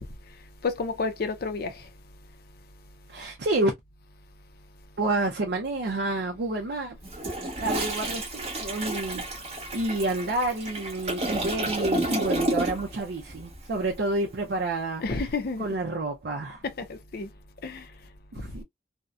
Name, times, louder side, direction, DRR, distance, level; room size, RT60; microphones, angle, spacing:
voice 1, 0.6-1.9 15.0-15.7 16.6-17.3 17.6-17.9 18.4-18.6, left 4 dB, 60° left, 0.5 m, -31 dB
voice 2, 3.1-3.7 5.0-7.0 7.3-15.0 15.6-16.6 18.3-18.6, right 2 dB, 70° right, 0.5 m, -29 dB
Toilet flush, 7.0-13.0 13.3-13.5, right 1 dB, 40° right, 1.0 m, -30 dB
2.6 x 2.1 x 2.3 m
head